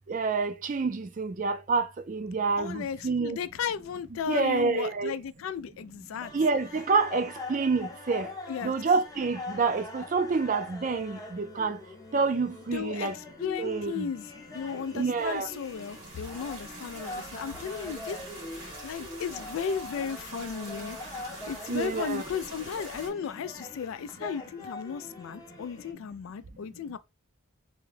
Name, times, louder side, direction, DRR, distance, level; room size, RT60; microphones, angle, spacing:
voice 1, 0.1-3.4 4.3-5.1 6.3-8.3 8.6-11.8 12.1-13.2 13.6-14.1 14.9-15.5 21.7-22.2, right 4 dB, 40° right, 0.4 m, -28 dB
voice 2, 2.6-6.3 8.5-8.7 12.7-18.2 18.5-21.0 21.5-27.0, left 7 dB, 85° left, 0.3 m, -35 dB
sound 1, 6.2-25.9, left 2 dB, 20° left, 0.6 m, -43 dB
sound 2, 14.7-23.1, right 2 dB, 90° right, 2.1 m, -45 dB
3.5 x 2.2 x 3.2 m
head